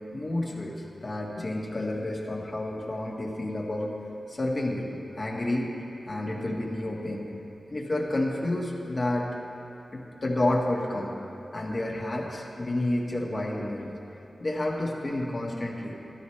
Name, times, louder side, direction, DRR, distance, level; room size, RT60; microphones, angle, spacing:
voice 1, 0.1-3.9 4.3-5.7 6.1-7.3 7.7-9.3 9.9-11.1 11.5-13.9 14.4-16.0, left 1 dB, 45° left, -3 dB, 1.7 m, -30 dB
13.5 x 13.0 x 3.3 m, 2.9 s
cardioid pair, 55°, 0 cm